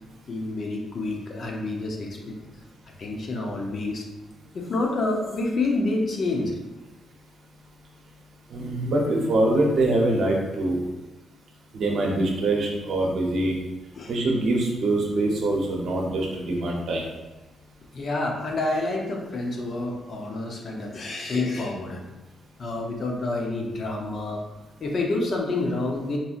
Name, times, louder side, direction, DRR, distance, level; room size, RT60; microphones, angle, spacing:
voice 1, 0.3-2.4 3.0-4.1 4.5-6.6 13.9-14.1 17.9-22.1 22.6-24.4 24.8-26.2, left 2 dB, 45° left, 0 dB, 0.6 m, -28 dB
voice 2, 8.5-10.8 11.7-13.6 14.1-17.0, right 2 dB, 65° right, -1 dB, 0.7 m, -24 dB
4.1 x 2.7 x 2.4 m, 1.1 s
cardioid pair, 150°, 0 cm